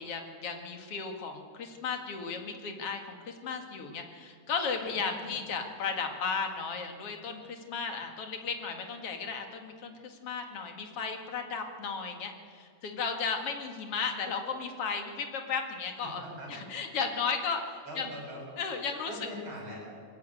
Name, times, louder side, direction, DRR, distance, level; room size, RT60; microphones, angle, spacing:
voice 1, 0.0-16.2 16.5-18.1 18.6-19.1, left 5 dB, 50° left, 4 dB, 2.8 m, -35 dB
voice 2, 4.9-5.4 16.0-16.7 17.8-18.4 19.1-19.8, equal, 40° right, -3 dB, 9.0 m, -42 dB
21.5 x 16.5 x 9.1 m, 2.1 s
omnidirectional pair, 3.4 m